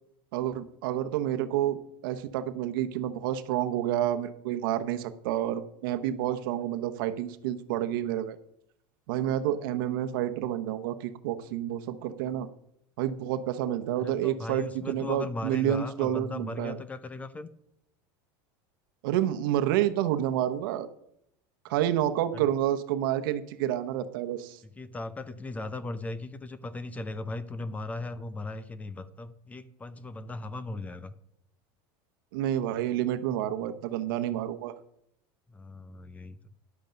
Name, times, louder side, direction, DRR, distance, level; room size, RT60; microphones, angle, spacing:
voice 1, 0.3-8.4 9.1-12.5 13.0-16.8 19.0-20.9 21.7-24.6 32.3-34.7, right 11 dB, 75° right, 9 dB, 1.0 m, -29 dB
voice 2, 14.0-17.5 22.3-22.5 24.8-31.1 35.5-36.4, left 2 dB, 10° left, 15 dB, 0.5 m, -38 dB
10.5 x 8.0 x 5.2 m, 0.72 s
supercardioid pair, 150°, 12 cm